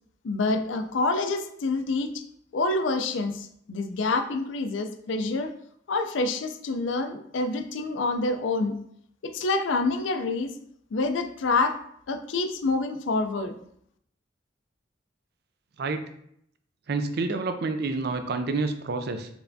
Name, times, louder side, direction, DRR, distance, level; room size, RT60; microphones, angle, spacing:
voice 1, 0.2-2.2 2.5-5.5 5.9-8.8 9.2-10.5 10.9-11.8 12.1-13.5, left 3 dB, 80° left, 7 dB, 0.4 m, -27 dB
voice 2, 16.9-19.3, right 3 dB, 55° right, 8 dB, 0.4 m, -28 dB
4.4 x 3.3 x 2.7 m, 0.69 s
head